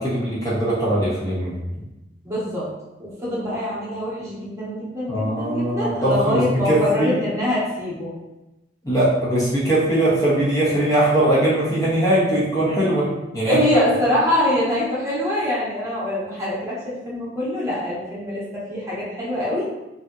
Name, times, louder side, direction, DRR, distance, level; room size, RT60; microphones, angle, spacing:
voice 1, 0.0-1.6 5.1-7.2 8.8-13.9, right 1 dB, 20° left, -8 dB, 0.7 m, -20 dB
voice 2, 2.2-2.7 3.0-8.1 13.5-19.7, left 1 dB, 15° right, -8 dB, 1.0 m, -24 dB
3.4 x 2.7 x 2.4 m, 0.99 s
head